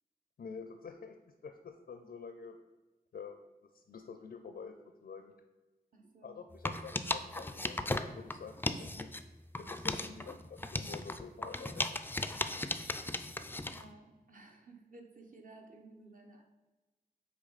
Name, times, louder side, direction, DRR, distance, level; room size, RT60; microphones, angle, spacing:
voice 1, 0.4-1.2 1.4-2.6 3.1-3.4 3.6-5.3 6.2-9.1 9.6-12.0, left 5 dB, 80° left, 6 dB, 0.5 m, -48 dB
voice 2, 5.9-6.4 10.1-10.3 13.6-16.4, right 2 dB, 55° right, 2 dB, 1.0 m, -56 dB
sound 1, 6.5-9.2 9.5-13.8, left 2 dB, 10° left, 0.3 m, -37 dB
8.2 x 3.1 x 4.1 m, 1.2 s
wide cardioid pair, 100°, 17 cm